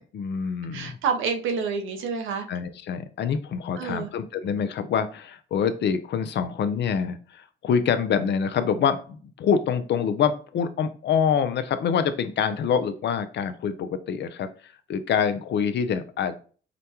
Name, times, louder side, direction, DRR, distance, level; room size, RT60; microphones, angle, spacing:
voice 1, 0.1-0.9 2.5-16.4, left 7 dB, 60° left, 10 dB, 0.6 m, -26 dB
voice 2, 0.7-2.5 3.8-4.1, right 5 dB, 80° right, 5 dB, 0.8 m, -28 dB
5.0 x 2.2 x 2.9 m, 0.39 s
cardioid pair, 90°, 20 cm